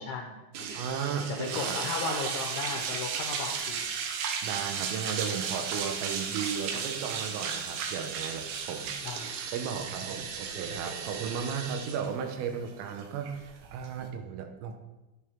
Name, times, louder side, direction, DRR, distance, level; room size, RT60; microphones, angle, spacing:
voice 1, 0.0-0.8 1.4-3.9 9.0-9.3, left 4 dB, 75° left, 2 dB, 2.6 m, -36 dB
sound 1, 0.5-14.1, right 6 dB, 75° right, 2.4 m, -35 dB
voice 2, 0.7-1.8 4.4-9.0 9.5-14.8, right 7 dB, 90° right, 4 dB, 3.7 m, -35 dB
11.0 x 10.5 x 3.6 m, 1.0 s
omnidirectional pair, 5.7 m